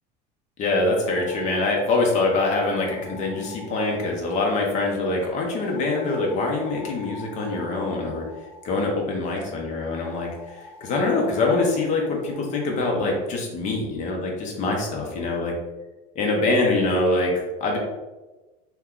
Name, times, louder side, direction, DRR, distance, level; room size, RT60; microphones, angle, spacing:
voice 1, 0.6-8.2 8.6-15.5 16.1-17.8, left 2 dB, 40° left, 0 dB, 0.8 m, -24 dB
sound 1, 1.0-4.8 5.5-8.8 9.9-13.1, left 2 dB, 5° left, 1.3 m, -45 dB
2.8 x 2.3 x 3.7 m, 1.1 s
supercardioid pair, 135°, 19 cm